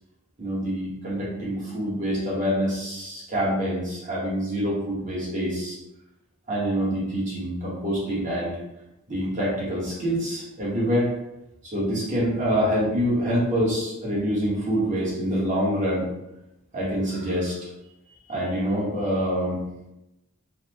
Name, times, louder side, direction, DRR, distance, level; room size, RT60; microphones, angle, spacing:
voice 1, 0.4-5.8 6.5-8.6 9.1-11.1 11.7-16.1 16.7-17.6 18.3-19.6, equal, 35° right, -7 dB, 1.2 m, -26 dB
3.9 x 2.1 x 2.9 m, 0.91 s
head